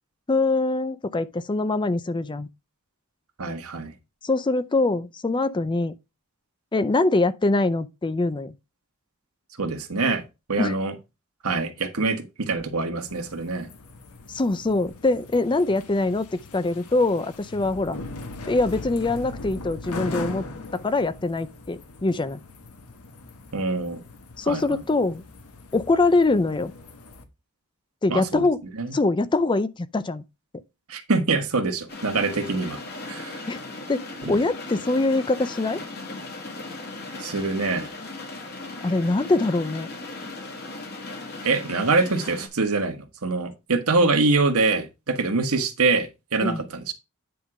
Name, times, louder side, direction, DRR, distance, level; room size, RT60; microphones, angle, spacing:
voice 1, 0.3-2.5 4.2-5.9 6.7-8.5 10.6-10.7 14.3-16.3 16.5-18.0 18.5-20.4 20.7-22.4 24.4-25.2 25.7-26.7 28.0-28.6 28.9-30.2 33.5-33.6 33.9-35.8 38.8-39.9 46.4-46.6, left 2 dB, 20° left, 0.4 m, -23 dB
voice 2, 3.4-3.9 9.6-10.2 10.5-10.9 11.4-13.7 23.5-24.0 24.4-24.8 28.1-28.4 28.8-28.9 30.9-32.8 33.1-33.4 34.2-34.3 37.2-37.9 41.4-46.9, right 3 dB, 75° right, 1.5 m, -24 dB
sound 1, 13.1-27.2, left 3 dB, 85° left, 1.3 m, -40 dB
sound 2, 31.9-42.5, left 2 dB, 45° left, 2.2 m, -37 dB
9.4 x 3.7 x 4.8 m
head